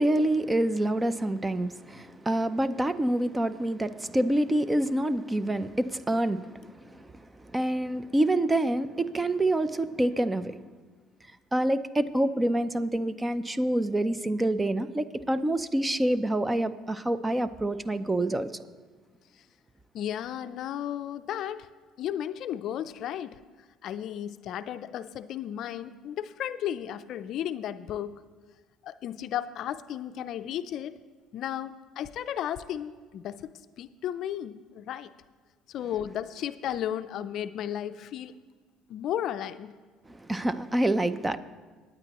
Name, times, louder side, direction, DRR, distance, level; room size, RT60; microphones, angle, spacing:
voice 1, 0.0-10.6 11.5-18.6 40.1-41.4, right 1 dB, 15° right, 0.6 m, -27 dB
voice 2, 19.9-21.7 22.0-23.4 23.8-28.2 28.8-30.9 31.3-33.5 33.8-35.1 35.7-38.3 38.9-39.7, left 10 dB, 65° left, 0.4 m, -34 dB
20.0 x 9.0 x 3.0 m
supercardioid pair, 80°, 0 cm